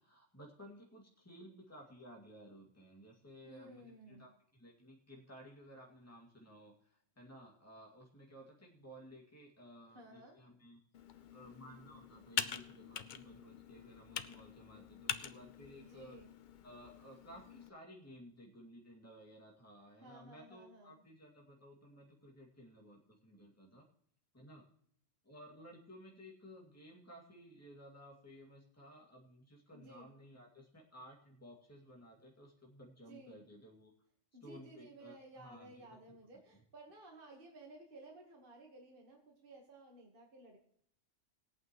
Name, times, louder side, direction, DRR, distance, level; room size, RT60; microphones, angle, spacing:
voice 1, 0.0-10.8 11.1-16.2 16.6-23.9 24.3-24.7 25.2-33.9 34.4-35.8 36.1-36.2 36.5-36.6, equal, 10° left, -2 dB, 2.3 m, -56 dB
voice 2, 3.4-4.3 9.9-10.4 14.7-15.0 15.7-16.3 20.0-21.0 29.7-30.1 33.1-33.4 34.3-40.6, right 2 dB, 45° right, 0 dB, 1.7 m, -56 dB
Computer keyboard, 10.9-17.7, left 8 dB, 50° left, 0.6 m, -44 dB
20.0 x 8.7 x 3.1 m, 0.65 s
omnidirectional pair, 1.3 m